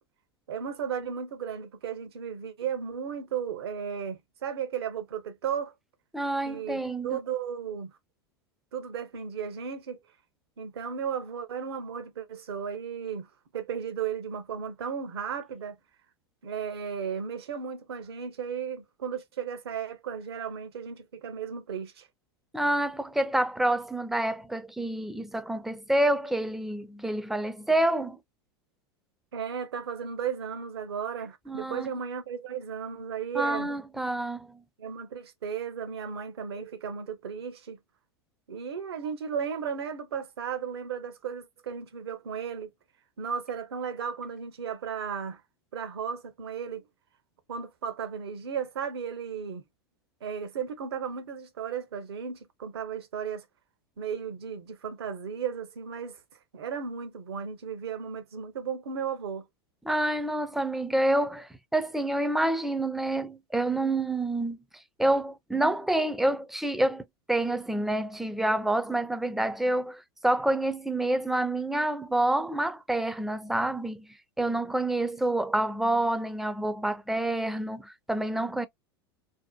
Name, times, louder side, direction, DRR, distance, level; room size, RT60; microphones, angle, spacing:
voice 1, 0.5-5.7 6.4-8.0 8.7-10.0 10.6-15.8 16.4-22.1 29.3-33.7 34.8-37.8 38.5-42.7 43.2-45.4 45.7-46.9 47.5-49.6 50.2-53.4 54.0-56.2 56.5-59.4, right 7 dB, 75° right, 0.7 m, -35 dB
voice 2, 6.1-7.2 22.5-28.2 31.5-31.9 33.3-34.6 59.9-64.6 65.0-78.7, right 1 dB, ahead, 0.4 m, -28 dB
2.7 x 2.1 x 2.2 m
hypercardioid pair, 90°, 13 cm